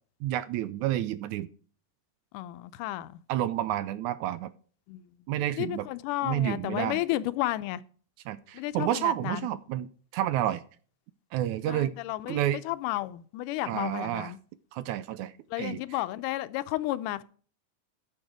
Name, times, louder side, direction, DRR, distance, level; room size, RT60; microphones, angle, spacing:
voice 1, 0.2-1.5 3.3-4.5 5.3-5.9 6.2-7.0 8.3-10.6 11.3-12.0 12.3-12.6 13.7-14.3 14.7-15.8, right 12 dB, 80° right, 1.9 m, -30 dB
voice 2, 2.3-3.1 4.9-5.0 5.6-7.8 8.5-9.5 11.7-14.4 15.5-17.2, left 16 dB, 85° left, 2.2 m, -32 dB
10.0 x 7.4 x 4.8 m
omnidirectional pair, 3.7 m